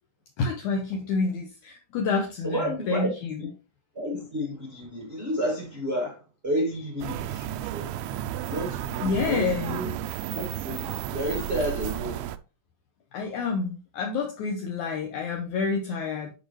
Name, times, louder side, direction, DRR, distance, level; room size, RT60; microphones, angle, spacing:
voice 1, 0.4-3.3 9.0-9.8 13.1-16.3, left 4 dB, 75° left, 1.9 m, -28 dB
voice 2, 2.4-3.1 3.4-3.5 3.9-7.9 8.4-9.9 10.3-12.2, equal, 40° right, 0.8 m, -31 dB
sound 1, 7.0-12.4, right 12 dB, 85° right, 2.4 m, -32 dB
10.0 x 4.9 x 3.2 m
omnidirectional pair, 4.5 m